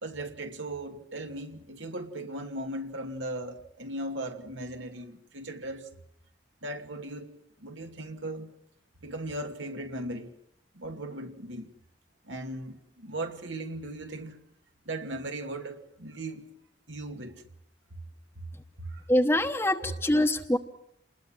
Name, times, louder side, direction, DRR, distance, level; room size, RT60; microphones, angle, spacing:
voice 1, 0.0-5.9 6.6-7.3 7.6-8.5 9.0-10.3 10.7-11.7 12.2-14.4 14.9-16.5 16.9-17.4 18.8-19.0, right 1 dB, 85° right, 2.5 m, -37 dB
voice 2, 19.1-20.6, left 1 dB, 10° left, 1.0 m, -24 dB
28.0 x 21.0 x 7.4 m
head